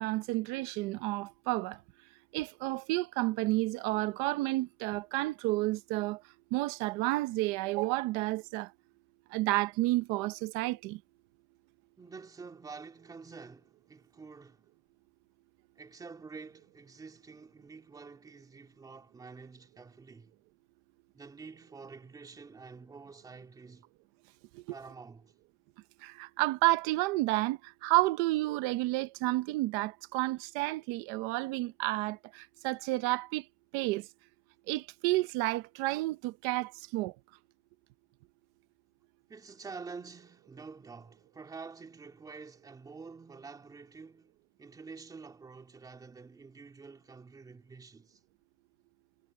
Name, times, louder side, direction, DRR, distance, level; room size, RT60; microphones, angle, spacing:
voice 1, 0.0-1.8 2.3-6.2 6.5-8.7 9.3-11.0 24.5-24.6 26.0-33.4 33.7-34.1 34.7-37.1, right 20 dB, 30° right, 0.6 m, -31 dB
voice 2, 12.0-14.6 15.8-20.3 21.1-23.8 24.7-25.3 39.3-44.3 44.6-48.2, right 4 dB, 10° right, 3.4 m, -48 dB
supercardioid pair, 180°, 40 cm